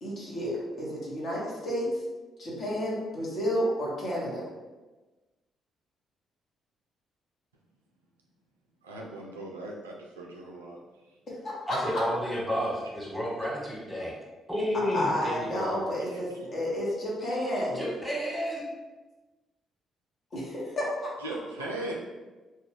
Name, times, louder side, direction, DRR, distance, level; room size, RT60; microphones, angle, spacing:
voice 1, 0.0-2.0 2.4-4.4 11.4-12.0 14.9-17.8 20.3-21.1, equal, 50° left, -4 dB, 0.9 m, -31 dB
voice 2, 8.8-10.8 21.2-21.9, right 2 dB, 90° right, -2 dB, 0.3 m, -38 dB
voice 3, 11.7-14.1 14.5-15.8 17.7-18.6, equal, 5° right, -5 dB, 1.1 m, -31 dB
2.2 x 2.2 x 3.3 m, 1.2 s
hypercardioid pair, 45°, 0 cm